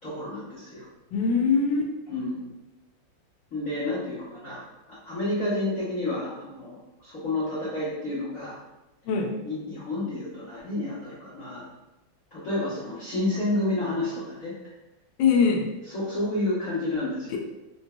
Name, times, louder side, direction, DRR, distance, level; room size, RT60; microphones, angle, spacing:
voice 1, 0.0-0.9 2.1-2.5 3.5-4.6 4.9-8.6 9.4-11.6 12.3-14.5 15.9-17.4, left 2 dB, 45° left, -14 dB, 1.4 m, -30 dB
voice 2, 1.1-1.9 9.1-9.3 15.2-15.7, left 5 dB, 75° left, 2 dB, 1.1 m, -22 dB
3.9 x 2.6 x 2.2 m, 0.99 s
omnidirectional pair, 2.2 m